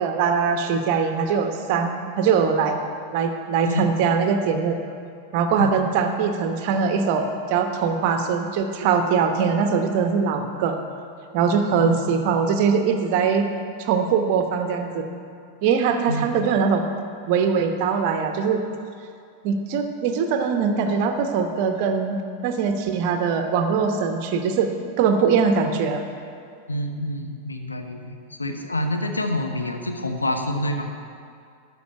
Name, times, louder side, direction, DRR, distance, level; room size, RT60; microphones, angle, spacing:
voice 1, 0.0-2.8 3.1-4.8 5.3-10.7 11.3-13.5 13.8-15.1 15.6-16.8 17.3-18.6 19.4-26.0, right 6 dB, 45° right, 5 dB, 1.1 m, -22 dB
voice 2, 11.7-12.3 16.1-16.4 26.7-30.9, left 1 dB, 80° left, 5 dB, 0.9 m, -27 dB
12.5 x 5.3 x 7.9 m, 2.3 s
figure-of-eight pair, 90°, 0 cm